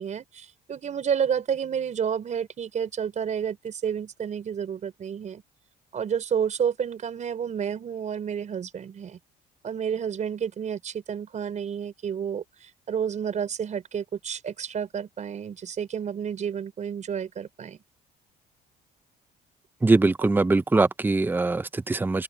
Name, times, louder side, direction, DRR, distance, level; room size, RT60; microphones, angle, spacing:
voice 1, 0.0-5.4 5.9-9.2 9.6-17.8, right 8 dB, 45° right, 5.2 m, -30 dB
voice 2, 19.8-22.2, right 3 dB, 10° right, 0.8 m, -22 dB
cardioid pair, 110°, 17 cm